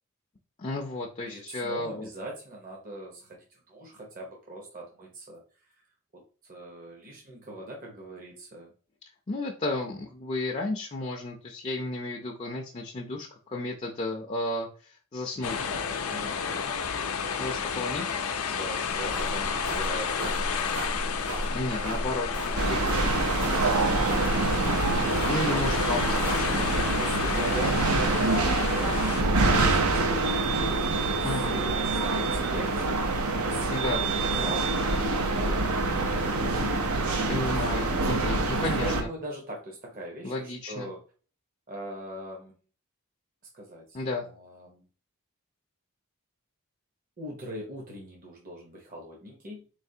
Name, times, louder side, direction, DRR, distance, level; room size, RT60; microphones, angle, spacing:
voice 1, 0.6-2.1 9.3-15.7 17.4-18.1 21.5-23.1 25.3-26.8 31.2-31.6 33.7-34.0 37.3-39.1 40.2-40.9 43.9-44.3, left 2 dB, 30° left, -1 dB, 0.5 m, -33 dB
voice 2, 1.2-5.4 5.7-5.8 6.1-8.7 16.1-17.1 18.6-20.8 27.0-35.7 38.6-41.0 41.7-42.5 43.5-44.8 47.2-49.6, right 1 dB, 40° right, -1 dB, 0.8 m, -41 dB
sound 1, 15.4-29.2, left 6 dB, 80° left, 0.5 m, -31 dB
sound 2, 18.9-26.8, equal, 65° right, 1.3 m, -36 dB
sound 3, 22.6-39.0, right 2 dB, 85° right, 0.7 m, -26 dB
4.1 x 3.3 x 2.7 m, 0.38 s
head